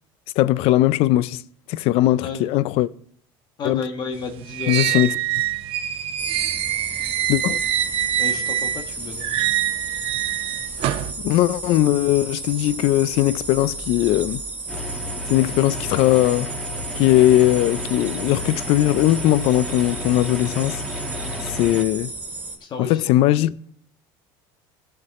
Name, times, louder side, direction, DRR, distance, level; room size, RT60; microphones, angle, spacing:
voice 1, 0.4-1.4 1.7-2.9 3.6-3.8 4.7-5.1 7.3-7.6 11.2-14.4 15.3-16.5 17.0-20.8 21.4-22.1 22.8-23.5, left 15 dB, 60° left, 0.4 m, -19 dB
voice 2, 3.6-5.2 8.2-9.5 22.6-23.0, left 4 dB, 45° left, 1.4 m, -32 dB
sound 1, 4.1-8.9 9.2-11.1, right 12 dB, 55° right, 0.8 m, -25 dB
sound 2, 6.2-22.6, right 3 dB, 15° right, 2.7 m, -33 dB
sound 3, 14.7-21.8, left 1 dB, 5° left, 2.3 m, -32 dB
16.5 x 5.9 x 4.2 m
supercardioid pair, 105°, 11 cm